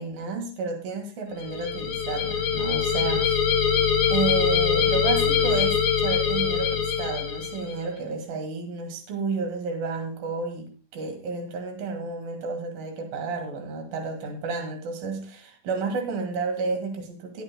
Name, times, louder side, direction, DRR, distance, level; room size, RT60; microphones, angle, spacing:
voice 1, 0.0-3.4 4.1-17.4, right 4 dB, 75° right, 3 dB, 3.8 m, -31 dB
sound 1, 1.4-7.8, left 7 dB, 80° left, 4.1 m, -23 dB
20.0 x 9.7 x 2.3 m, 0.37 s
omnidirectional pair, 4.2 m